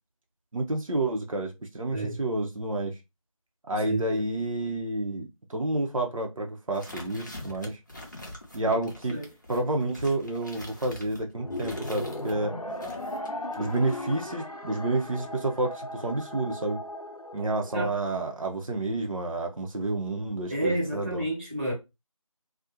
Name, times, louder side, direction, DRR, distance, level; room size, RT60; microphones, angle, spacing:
voice 1, 0.5-2.9 3.7-7.8 8.5-9.2 9.5-12.5 13.6-16.8 17.3-21.2, right 2 dB, 70° right, 0.6 m, -29 dB
voice 2, 3.8-4.2 8.7-8.8 9.1-9.3 17.7-17.9 20.5-21.7, right 1 dB, 20° right, 0.9 m, -30 dB
sound 1, 6.7-12.4 12.8-14.0, left 1 dB, 30° left, 0.6 m, -44 dB
sound 2, 11.4-17.9, left 1 dB, 80° left, 0.6 m, -37 dB
2.4 x 2.0 x 2.7 m
figure-of-eight pair, 170°, 18 cm